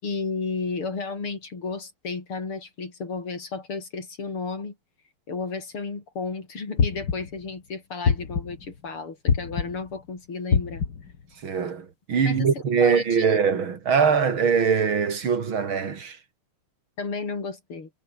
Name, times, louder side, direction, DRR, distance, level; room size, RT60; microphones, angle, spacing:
voice 1, 0.0-4.8 5.3-10.8 12.2-13.3 17.0-17.9, left 4 dB, 85° left, 5.2 m, -33 dB
sound 1, 6.8-7.4 8.0-8.7 9.3-9.9 10.5-11.2, left 6 dB, 55° left, 2.6 m, -24 dB
voice 2, 11.4-16.2, right 6 dB, 70° right, 3.2 m, -22 dB
omnidirectional pair, 2.3 m